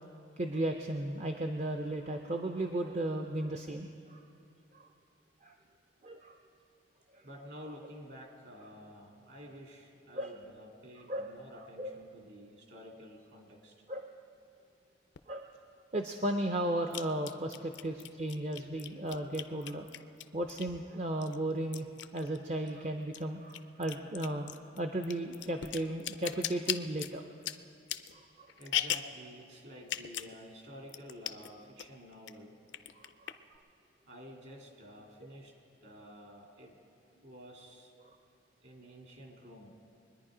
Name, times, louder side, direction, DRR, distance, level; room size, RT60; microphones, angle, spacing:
voice 1, 0.4-4.2 4.7-4.9 5.4-5.5 6.0-6.4 7.1-7.3 10.1-10.3 11.1-11.3 11.8-12.0 13.9-14.1 15.3-15.4 15.9-19.9 20.3-21.9 22.1-27.3 28.1-28.5 33.0-33.3 38.0-38.2, right 1 dB, 35° right, 4 dB, 0.5 m, -35 dB
voice 2, 7.2-13.8 18.3-18.4 18.9-19.0 28.6-32.6 34.0-35.5 35.8-36.8 37.2-37.9 38.6-39.7, equal, 55° right, 0 dB, 2.4 m, -51 dB
sound 1, 15.2-15.3 16.9-20.8 21.2-22.8 23.0-29.2 29.8-30.4 30.6-30.7 30.9-31.5 31.8-32.3 32.7-33.6, left 11 dB, 65° left, 0.4 m, -38 dB
23.0 x 10.5 x 4.9 m, 2.5 s
head